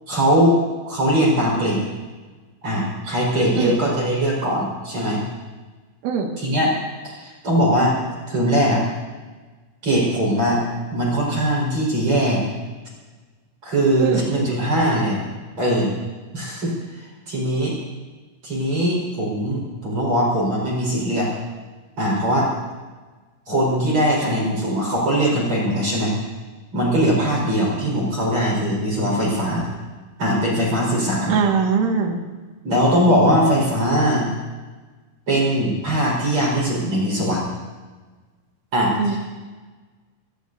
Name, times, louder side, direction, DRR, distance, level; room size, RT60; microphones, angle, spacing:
voice 1, 0.1-0.6 0.9-1.8 2.6-5.2 6.4-6.7 7.0-7.9 8.3-8.8 9.8-10.6 10.9-12.4 13.6-15.2 15.6-16.0 16.3-17.7 18.4-21.3 22.0-22.5 23.5-26.1 26.7-29.7 30.2-31.4 32.6-34.3 35.3-37.4 38.7-39.2, equal, 30° right, -4 dB, 5.2 m, -20 dB
voice 2, 31.3-32.2 39.0-39.2, right 5 dB, 75° right, 1 dB, 4.3 m, -21 dB
25.0 x 18.5 x 2.7 m, 1.3 s
omnidirectional pair, 5.7 m